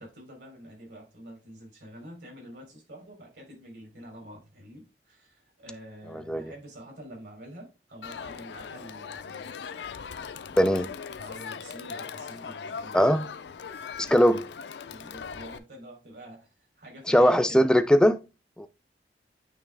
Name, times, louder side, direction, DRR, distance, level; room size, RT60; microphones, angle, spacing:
voice 1, 0.0-9.6 10.6-10.7 11.1-13.0 13.6-14.2 14.9-16.5 16.8-17.7, right 1 dB, 80° right, 3.3 m, -47 dB
voice 2, 6.1-6.5 10.6-10.9 12.9-13.3 14.1-14.5 17.1-18.2 18.6-18.7, equal, 5° left, 0.3 m, -20 dB
Crowd, 8.0-15.6, left 6 dB, 75° left, 0.4 m, -39 dB
8.9 x 3.2 x 3.4 m
head